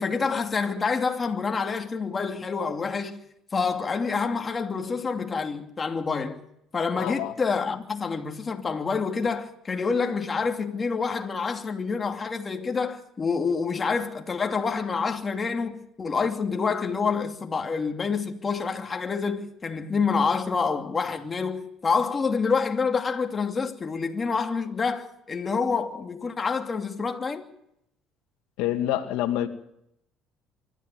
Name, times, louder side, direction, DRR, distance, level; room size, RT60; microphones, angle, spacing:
voice 1, 0.0-3.2 3.5-6.4 6.7-27.4, left 5 dB, 25° left, 2.8 m, -27 dB
voice 2, 7.0-7.3 28.6-29.5, left 12 dB, 85° left, 2.3 m, -27 dB
25.0 x 13.5 x 9.3 m
cardioid pair, 105°, 0 cm